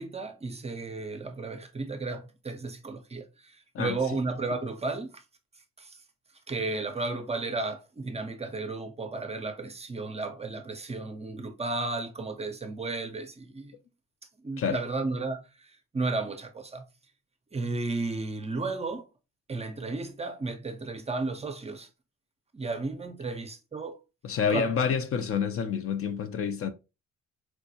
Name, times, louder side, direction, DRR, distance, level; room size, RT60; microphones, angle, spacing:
voice 1, 0.0-5.2 5.8-6.0 6.5-13.7 14.4-15.4 15.9-16.9 17.5-19.0 19.5-21.9 22.5-24.0 24.5-24.7, right 3 dB, 20° right, 0.5 m, -33 dB
voice 2, 24.2-26.7, left 6 dB, 50° left, 0.4 m, -28 dB
4.5 x 2.0 x 2.6 m
cardioid pair, 90°, 30 cm